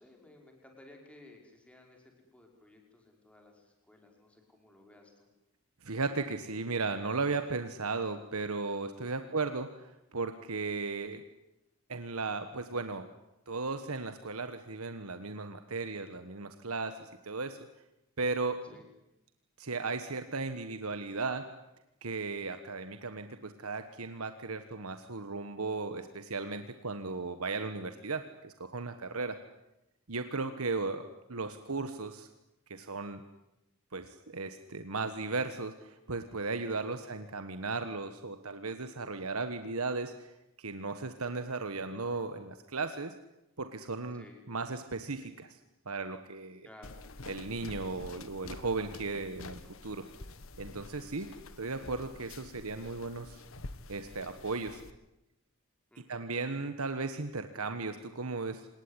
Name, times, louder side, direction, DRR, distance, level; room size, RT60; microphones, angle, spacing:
voice 1, 0.0-5.3 9.2-9.4 18.6-18.9 27.7-28.0 36.8-37.1 44.1-44.4 46.6-47.0 51.2-51.4 55.9-56.3, left 1 dB, 5° left, 1 dB, 5.2 m, -57 dB
voice 2, 5.8-11.2 11.9-13.1 13.5-17.6 18.2-18.6 19.6-21.4 22.0-29.4 30.1-31.0 31.3-32.3 32.7-33.2 33.9-40.3 40.6-43.1 43.6-45.6 45.8-46.7 47.3-50.1 50.6-51.3 51.6-53.4 53.9-54.8 56.1-58.7, right 3 dB, 80° right, 8 dB, 1.4 m, -36 dB
sound 1, 46.8-54.9, left 2 dB, 70° left, 1.6 m, -48 dB
27.0 x 20.0 x 10.0 m, 0.92 s
head